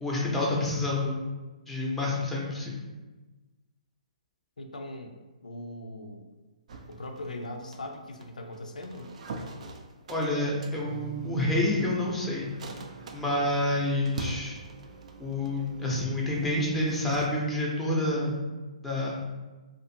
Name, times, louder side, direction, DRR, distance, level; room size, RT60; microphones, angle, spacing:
voice 1, 0.0-1.2 1.7-2.8 10.1-12.5 13.1-14.6 15.2-18.5 18.8-19.1, left 1 dB, 5° left, -4 dB, 0.5 m, -28 dB
voice 2, 4.6-6.3 6.9-9.1, left 1 dB, 85° left, 3 dB, 0.3 m, -40 dB
sound 1, 6.7-17.3, right 3 dB, 60° right, 0.3 m, -43 dB
2.5 x 2.4 x 2.7 m, 1.2 s
hypercardioid pair, 135°, 4 cm